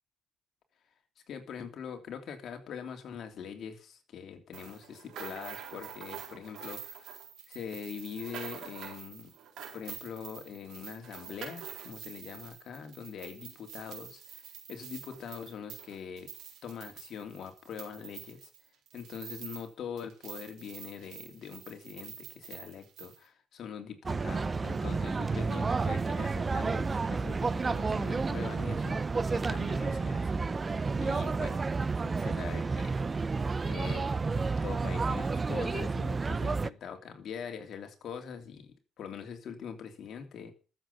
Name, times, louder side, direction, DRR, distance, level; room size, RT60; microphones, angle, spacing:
voice 1, 1.3-7.1 7.5-9.3 9.7-16.3 16.6-18.5 18.9-29.0 29.3-30.2 31.0-31.6 32.0-33.2 33.6-34.1 34.6-40.5, left 7 dB, 65° left, 5 dB, 3.2 m, -43 dB
sound 1, 4.5-19.7 20.0-23.2, right 8 dB, 80° right, 4.3 m, -47 dB
sound 2, 24.0-36.7, right 4 dB, 30° right, 0.5 m, -31 dB
Wind instrument woodwind instrument, 27.8-32.9, left 1 dB, 20° left, 5.9 m, -60 dB
13.5 x 7.8 x 7.1 m, 0.36 s
cardioid pair, 90°, 0 cm